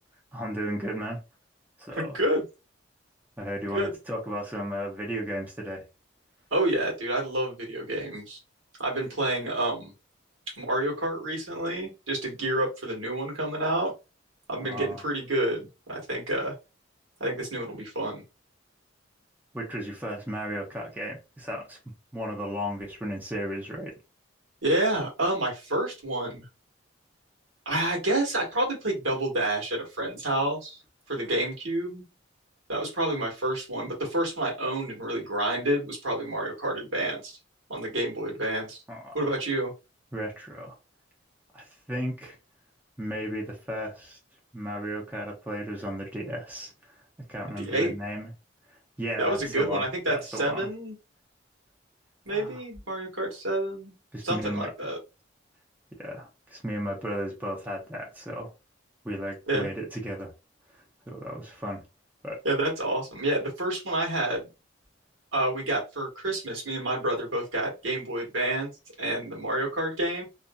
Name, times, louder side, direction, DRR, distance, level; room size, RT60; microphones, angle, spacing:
voice 1, 0.3-1.2 1.8-2.2 3.4-5.8 14.5-15.0 19.5-21.8 22.1-23.9 38.9-39.2 40.1-40.8 41.5-42.4 43.0-44.2 44.5-47.0 47.3-48.3 48.7-50.7 52.3-52.6 54.1-54.9 56.0-58.5 59.0-60.3 60.7-61.8 62.2-62.4, equal, 10° right, 0.7 m, -35 dB
voice 2, 1.9-2.4 3.7-3.9 6.5-8.4 8.8-9.9 10.5-13.9 14.5-16.5 17.2-18.2 24.6-26.5 27.6-30.8 31.1-32.0 32.7-37.4 37.7-38.8 39.1-39.7 47.6-47.9 49.2-50.9 52.2-53.9 54.2-55.0 59.5-59.7 62.4-64.5 65.3-68.7 69.0-70.2, right 1 dB, 80° right, 1.4 m, -29 dB
2.5 x 2.5 x 2.2 m
head